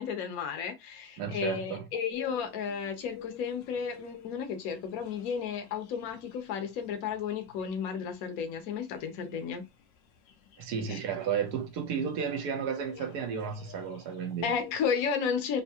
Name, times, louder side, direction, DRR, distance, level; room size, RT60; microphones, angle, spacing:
voice 1, 0.0-9.6 10.9-11.0 14.4-15.6, left 6 dB, 60° left, 1.1 m, -33 dB
voice 2, 1.2-1.8 10.6-14.5, right 7 dB, 65° right, 1.2 m, -33 dB
sound 1, 2.1-15.0, left 9 dB, 85° left, 1.3 m, -50 dB
3.4 x 2.8 x 2.8 m
omnidirectional pair, 2.0 m